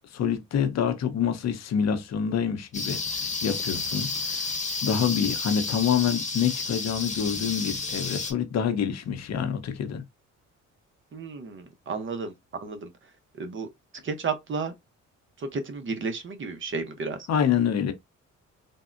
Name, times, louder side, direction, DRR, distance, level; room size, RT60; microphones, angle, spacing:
voice 1, 0.1-4.5 4.8-10.0 17.3-17.9, left 8 dB, 60° left, 0.7 m, -27 dB
sound 1, 2.7-8.3, left 4 dB, 25° left, 0.9 m, -31 dB
voice 2, 11.1-13.7 14.0-14.7 15.4-17.3, right 4 dB, 40° right, 0.7 m, -33 dB
3.5 x 2.0 x 2.4 m
cardioid pair, 90°, 30 cm